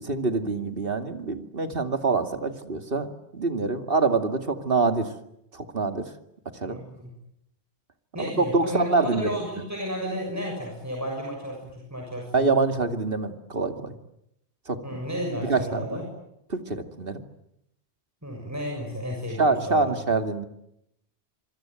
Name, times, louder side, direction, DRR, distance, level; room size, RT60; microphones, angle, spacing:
voice 1, 0.0-5.1 5.5-6.1 6.5-6.8 8.2-9.3 12.3-13.9 14.7-15.0 15.4-16.0 16.5-17.2 19.4-20.5, right 3 dB, 55° right, 8 dB, 2.7 m, -25 dB
voice 2, 6.7-7.1 8.1-12.5 14.8-16.0 18.2-20.0, equal, 15° right, 0 dB, 6.9 m, -33 dB
26.0 x 25.0 x 9.2 m, 0.79 s
omnidirectional pair, 1.1 m